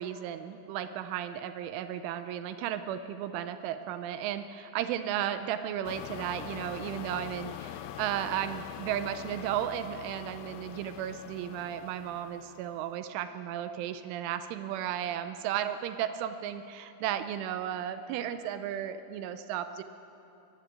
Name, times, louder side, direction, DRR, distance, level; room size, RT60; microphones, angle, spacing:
voice 1, 0.0-19.8, right 10 dB, 80° right, 10 dB, 2.9 m, -34 dB
sound 1, 5.9-12.9, left 12 dB, 85° left, 3.2 m, -44 dB
21.5 x 14.5 x 8.5 m, 2.9 s
omnidirectional pair, 5.9 m